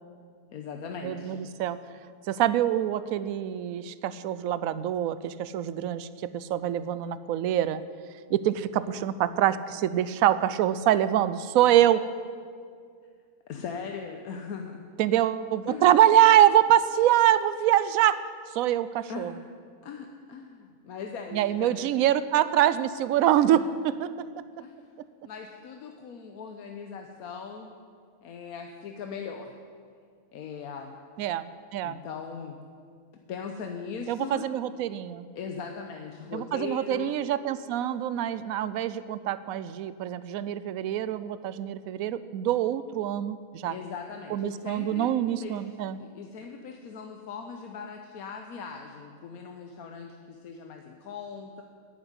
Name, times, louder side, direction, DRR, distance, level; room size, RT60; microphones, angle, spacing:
voice 1, 0.5-1.6 13.5-14.9 15.7-15.9 19.1-19.4 19.8-21.9 23.5-23.7 24.6-24.7 25.2-27.8 28.2-29.6 30.3-31.0 31.8-32.6 33.1-34.5 35.3-37.1 43.7-45.1 45.4-51.6, left 6 dB, 85° left, 4 dB, 1.3 m, -39 dB
voice 2, 1.0-1.8 2.3-6.1 6.3-7.8 8.3-12.1 15.0-18.2 18.5-19.3 21.3-23.6 24.0-24.3 31.2-32.0 34.1-35.3 36.3-43.7 44.3-46.0, right 11 dB, 80° right, 15 dB, 1.0 m, -24 dB
11.0 x 10.0 x 9.6 m, 2.1 s
omnidirectional pair, 1.5 m